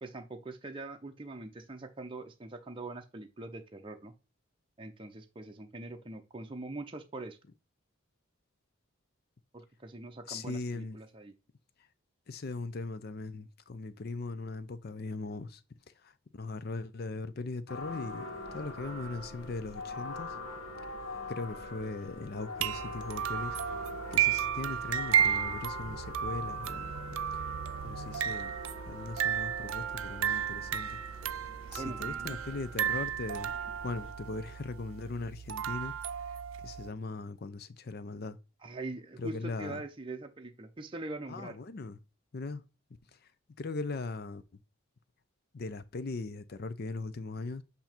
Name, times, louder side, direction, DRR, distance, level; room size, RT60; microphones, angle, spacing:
voice 1, 0.0-4.1 4.8-7.4 9.5-11.3 31.6-32.4 38.6-41.6, right 2 dB, 25° right, 0.6 m, -43 dB
voice 2, 10.3-11.0 12.3-15.6 16.3-18.3 18.5-20.3 21.3-23.6 24.1-26.9 27.8-28.5 28.9-31.0 31.7-33.5 33.8-35.9 36.6-38.4 39.2-39.8 41.3-41.9 42.3-42.6 43.6-44.4 45.5-47.6, left 3 dB, 50° left, 0.5 m, -39 dB
sound 1, 17.7-34.1, left 2 dB, 85° left, 1.3 m, -44 dB
sound 2, 22.6-36.9, right 9 dB, 85° right, 0.4 m, -33 dB
8.0 x 2.8 x 4.3 m
head